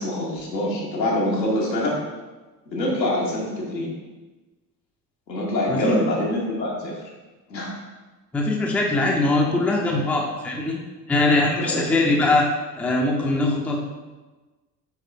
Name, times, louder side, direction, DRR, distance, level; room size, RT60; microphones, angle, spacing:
voice 1, 0.0-2.0 2.7-3.9 5.3-7.0 7.5-7.7 11.5-11.8, left 1 dB, 85° left, -4 dB, 1.0 m, -25 dB
voice 2, 5.7-6.0 8.3-10.8 11.1-12.5 12.8-13.8, left 2 dB, 5° left, -1 dB, 0.4 m, -21 dB
4.5 x 4.2 x 2.5 m, 1.2 s
figure-of-eight pair, 55°, 50 cm